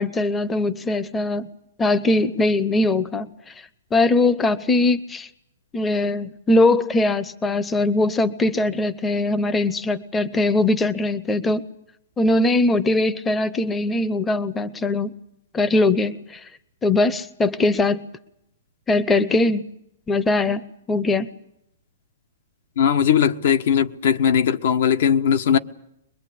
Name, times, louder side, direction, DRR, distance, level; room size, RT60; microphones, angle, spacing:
voice 1, 0.0-1.5 1.8-3.5 3.9-5.3 5.7-11.6 12.2-15.1 15.5-16.5 16.8-18.0 18.9-19.6 20.1-20.6 20.9-21.3, left 2 dB, 10° left, 0.8 m, -21 dB
voice 2, 22.8-25.6, left 8 dB, 65° left, 1.3 m, -19 dB
23.5 x 21.5 x 8.5 m
hypercardioid pair, 145°, 0 cm